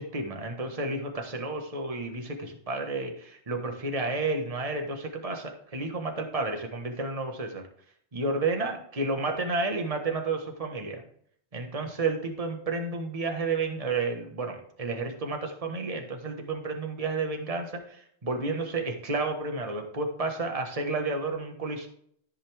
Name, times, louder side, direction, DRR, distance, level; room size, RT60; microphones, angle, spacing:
voice 1, 0.0-7.6 8.1-11.0 11.5-21.9, right 3 dB, 35° right, 3 dB, 1.5 m, -31 dB
14.0 x 5.6 x 3.4 m, 0.65 s
omnidirectional pair, 1.1 m